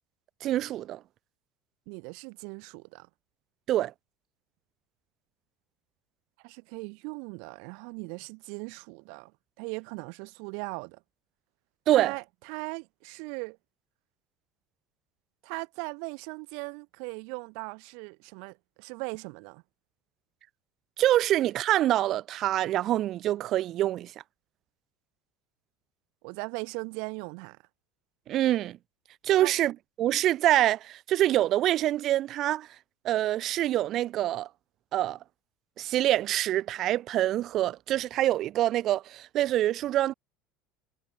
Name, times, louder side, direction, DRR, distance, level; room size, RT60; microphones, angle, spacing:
voice 1, 0.4-1.0 3.7-3.9 11.9-12.1 21.0-24.1 28.3-28.8 29.2-29.7 30.0-32.7 33.0-34.5 34.9-35.2 35.8-40.1, right 13 dB, 45° right, 0.9 m, -25 dB
voice 2, 1.9-3.1 6.4-9.3 9.6-11.0 11.9-13.6 15.4-19.6 26.2-27.6 29.4-29.5, right 39 dB, 70° right, 3.5 m, -39 dB
cardioid pair, 145°, 0 cm